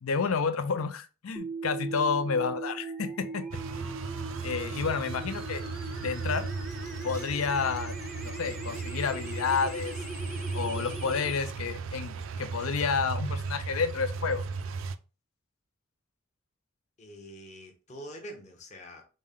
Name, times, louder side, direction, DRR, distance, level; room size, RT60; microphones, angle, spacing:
voice 1, 0.0-3.5 3.8-3.9 4.4-5.6 6.0-6.5 7.0-7.9 8.2-9.9 10.5-14.4, left 5 dB, 80° left, 0.5 m, -30 dB
sound 1, 1.4-11.4, right 2 dB, ahead, 0.5 m, -40 dB
sound 2, 3.5-15.0, right 4 dB, 65° right, 0.3 m, -36 dB
voice 2, 17.0-19.0, equal, 35° left, 0.9 m, -45 dB
5.1 x 2.2 x 3.5 m
head